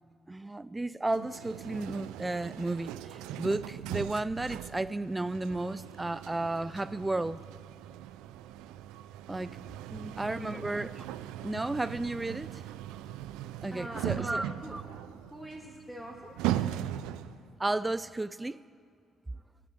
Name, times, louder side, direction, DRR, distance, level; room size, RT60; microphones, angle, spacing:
voice 1, 0.3-7.4 9.3-9.6 10.2-11.0 11.4-12.6 13.6-14.8 17.6-18.6, right 2 dB, 20° right, 0.4 m, -33 dB
sound 1, 1.1-17.5, right 12 dB, 85° right, 0.4 m, -39 dB
voice 2, 9.9-10.7 13.7-16.4, equal, ahead, 2.1 m, -43 dB
13.5 x 11.5 x 7.8 m
supercardioid pair, 60°, 0 cm